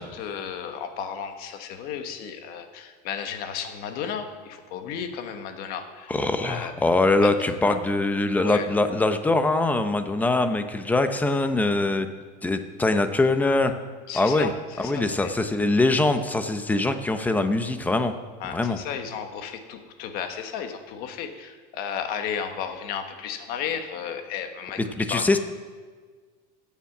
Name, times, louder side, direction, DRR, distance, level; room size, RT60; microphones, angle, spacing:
voice 1, 0.0-6.1 6.4-6.7 7.2-7.3 7.6-7.8 8.4-8.7 14.1-14.5 14.8-15.3 18.4-24.8 25.1-25.2, left 8 dB, 50° left, 7 dB, 1.4 m, -33 dB
voice 2, 6.1-12.1 12.4-13.7 14.1-14.5 14.8-18.1 18.4-18.8 24.8-25.4, left 2 dB, 10° left, 9 dB, 0.7 m, -23 dB
16.5 x 7.3 x 6.0 m, 1.5 s
supercardioid pair, 155°, 20 cm